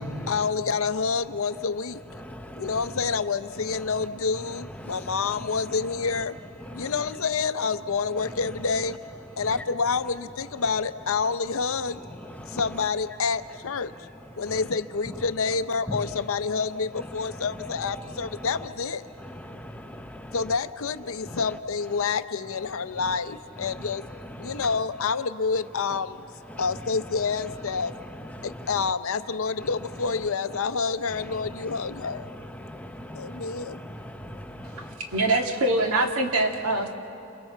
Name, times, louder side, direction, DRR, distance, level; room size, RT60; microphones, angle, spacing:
voice 1, 0.3-2.0 2.6-6.4 6.7-9.0 9.4-12.0 12.5-13.9 14.4-19.0 20.3-24.0 24.4-26.2 26.6-27.9 28.4-32.3 33.1-33.8, left 5 dB, 65° left, 0.7 m, -28 dB
voice 2, 2.2-2.7 4.8-5.1 6.8-6.9 12.4-12.6 15.9-16.0 19.4-20.4 24.4-24.6 28.4-28.5 32.6-35.0, equal, 5° left, 0.8 m, -40 dB
voice 3, 35.1-36.9, right 2 dB, 70° right, 1.8 m, -23 dB
29.0 x 28.5 x 4.5 m
head